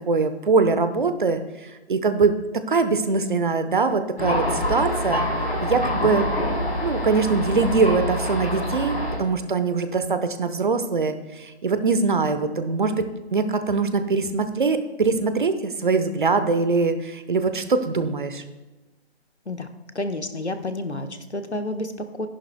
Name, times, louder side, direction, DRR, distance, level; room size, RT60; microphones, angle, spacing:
voice 1, 0.1-1.4 1.9-5.2 5.6-6.3 6.8-18.4, right 4 dB, 50° right, 10 dB, 0.9 m, -22 dB
Thunder, 4.2-9.2, left 1 dB, 65° left, 3.5 m, -26 dB
voice 2, 19.9-22.3, left 2 dB, 90° left, 7 dB, 1.2 m, -30 dB
14.0 x 11.0 x 2.2 m, 1.1 s
figure-of-eight pair, 150°, 33 cm